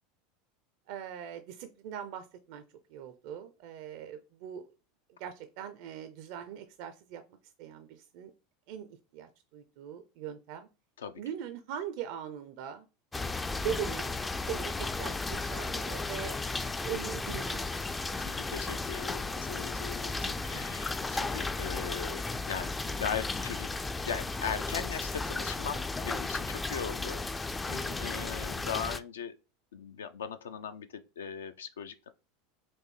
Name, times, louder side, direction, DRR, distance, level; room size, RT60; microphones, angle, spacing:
voice 1, 0.9-2.6 2.9-4.7 5.2-7.2 7.6-8.3 8.7-10.7 11.2-12.9 13.5-14.1 14.5-16.4 16.8-17.9 20.4-20.6 27.9-28.2, right 8 dB, 60° right, 0.4 m, -41 dB
sound 1, 13.1-29.0, left 3 dB, 15° left, 0.3 m, -34 dB
voice 2, 18.2-22.2 22.5-23.7 24.0-29.3 29.7-32.1, left 7 dB, 80° left, 0.4 m, -39 dB
4.3 x 2.6 x 3.2 m
hypercardioid pair, 85°, 0 cm